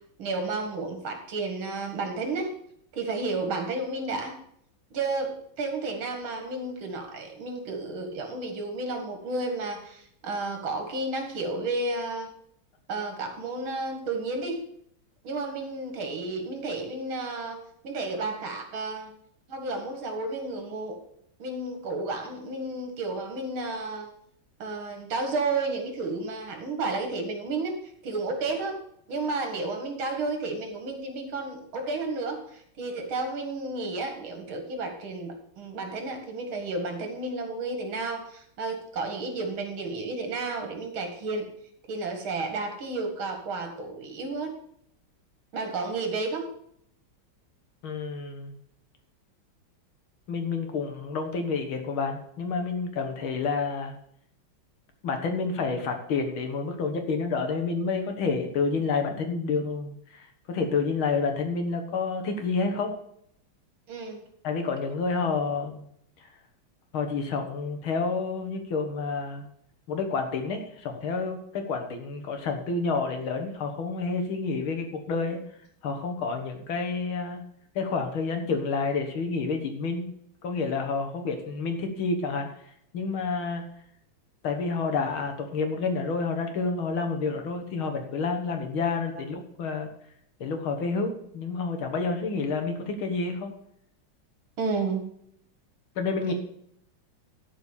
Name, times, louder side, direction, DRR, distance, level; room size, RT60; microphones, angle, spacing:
voice 1, 0.2-2.5 2.9-4.4 4.9-5.3 5.6-12.3 12.9-14.6 15.2-19.1 19.5-21.0 21.4-24.1 24.6-28.8 29.1-41.5 41.9-44.6 45.5-46.5 63.9-64.2 94.6-95.1 96.2-96.3, right 3 dB, 80° right, 4 dB, 2.6 m, -32 dB
voice 2, 47.8-48.6 50.3-53.9 55.0-62.9 64.4-65.8 66.2-66.3 66.9-69.5 69.9-75.4 75.8-77.4 77.8-80.1 80.4-82.5 82.9-83.6 84.4-89.9 90.4-93.5 96.0-96.3, left 4 dB, 85° left, 5 dB, 2.3 m, -29 dB
12.0 x 5.1 x 7.0 m, 0.69 s
omnidirectional pair, 2.2 m